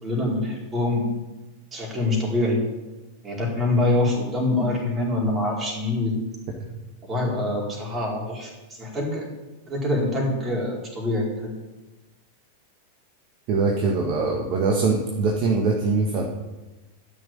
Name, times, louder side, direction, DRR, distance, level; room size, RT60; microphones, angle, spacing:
voice 1, 0.0-1.1 1.7-2.6 3.2-6.1 7.0-9.3 9.7-11.5, left 2 dB, 20° right, -2 dB, 4.7 m, -25 dB
voice 2, 13.5-16.2, right 4 dB, 40° right, 1 dB, 1.7 m, -22 dB
13.0 x 6.4 x 9.0 m, 1.1 s
figure-of-eight pair, 90°, 0 cm